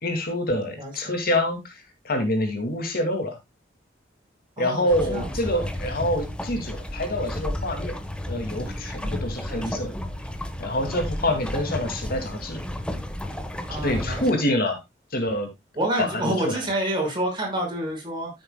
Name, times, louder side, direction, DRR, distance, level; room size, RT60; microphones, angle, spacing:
voice 1, 0.0-3.4 4.6-7.9 8.3-10.0 10.6-12.6 13.8-14.8 15.1-15.5 16.0-16.6, left 1 dB, 55° left, 5 dB, 2.3 m, -26 dB
voice 2, 0.8-1.1 4.6-5.3 9.5-9.8 13.7-14.2 15.8-18.3, right 1 dB, 25° right, 0 dB, 5.4 m, -28 dB
sound 1, 4.9-14.3, left 1 dB, 5° left, 1.2 m, -32 dB
14.0 x 7.7 x 2.2 m, 0.19 s
head